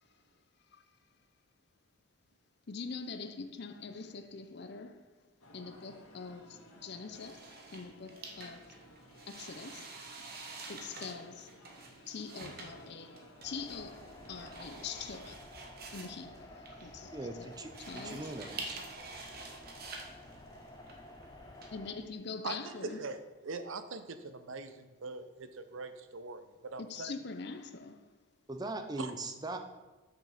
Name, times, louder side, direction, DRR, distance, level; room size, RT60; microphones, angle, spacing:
voice 1, 2.7-5.0 5.5-7.4 7.7-8.8 9.3-9.8 10.7-11.5 12.1-15.5 15.9-17.5 17.8-18.3 19.3-19.4 21.7-23.1 26.8-28.0, left 4 dB, 50° left, 0.6 m, -44 dB
sound 1, 5.4-14.8, equal, 85° left, 1.9 m, -57 dB
sound 2, 7.1-21.7, right 3 dB, 45° right, 1.0 m, -48 dB
sound 3, 13.4-21.9, left 1 dB, 20° left, 0.8 m, -52 dB
voice 2, 17.1-18.9 28.5-29.6, right 2 dB, 20° right, 0.5 m, -40 dB
voice 3, 22.4-27.1 29.0-29.1, right 3 dB, 70° right, 0.6 m, -42 dB
6.4 x 6.2 x 5.0 m
head